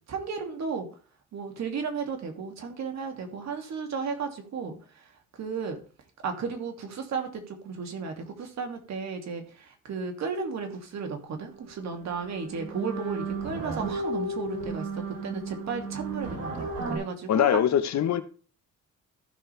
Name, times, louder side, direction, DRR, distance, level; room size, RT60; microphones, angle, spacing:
voice 1, 0.1-0.9 1.3-5.0 5.4-5.8 6.2-17.6, right 5 dB, 65° right, 2.6 m, -34 dB
sound 1, 11.6-11.7 12.0-17.0, right 2 dB, 80° right, 5.5 m, -34 dB
voice 2, 17.3-18.2, left 10 dB, 65° left, 1.1 m, -22 dB
14.5 x 6.3 x 3.4 m
cardioid pair, 90°, 30 cm